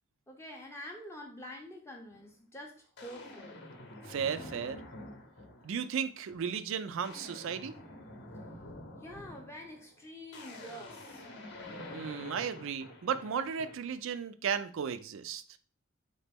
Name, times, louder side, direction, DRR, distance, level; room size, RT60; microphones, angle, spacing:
voice 1, 0.3-3.6 9.0-11.3, equal, 10° left, 1 dB, 0.5 m, -47 dB
sound 1, 2.1-2.3 3.0-5.9 6.3-6.6 6.9-14.0, left 1 dB, 50° left, 0.7 m, -48 dB
voice 2, 4.0-4.8 5.6-7.7 11.9-15.6, right 7 dB, 60° right, 12 dB, 0.3 m, -35 dB
4.1 x 2.9 x 3.4 m, 0.41 s
head